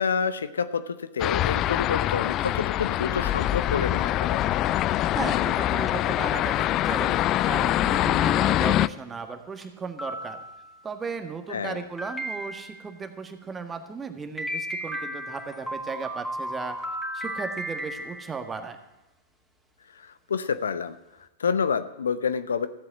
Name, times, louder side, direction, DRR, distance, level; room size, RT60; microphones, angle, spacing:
voice 1, 0.0-4.4 11.5-11.8 19.9-22.7, left 6 dB, 75° left, 13 dB, 0.7 m, -28 dB
sound 1, 1.2-8.9, left 14 dB, 35° left, 0.4 m, -24 dB
voice 2, 5.1-10.4 10.8-16.8 17.1-18.8, right 5 dB, 20° right, 7 dB, 1.6 m, -36 dB
sound 2, 5.9-6.3 6.9-7.1 7.7-7.8 8.2-8.3 9.0-9.1 9.6-9.7 10.0-10.8 12.0-12.9 14.4-18.6, equal, ahead, 2.6 m, -35 dB
14.5 x 7.7 x 7.7 m, 0.98 s
figure-of-eight pair, 100°, 0 cm